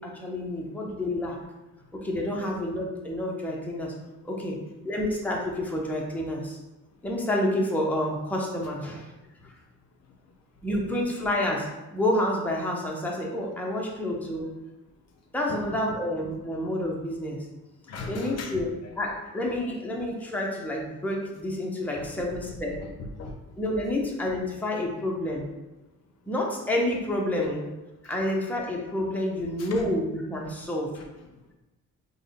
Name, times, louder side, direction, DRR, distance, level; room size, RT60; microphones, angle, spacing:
voice 1, 0.0-1.4 1.9-3.9 4.2-4.6 4.8-6.6 7.0-9.1 9.4-9.5 10.6-14.5 15.3-17.5 18.1-18.7 19.0-22.8 23.6-25.5 26.3-27.7 28.0-31.0, left 1 dB, 5° left, -2 dB, 0.7 m, -29 dB
voice 2, 17.9-19.0 22.0-22.4 22.8-23.3 29.6-29.8 30.9-31.0, left 3 dB, 60° left, 2 dB, 0.6 m, -39 dB
3.4 x 2.2 x 3.5 m, 1.0 s
cardioid pair, 90°, 30 cm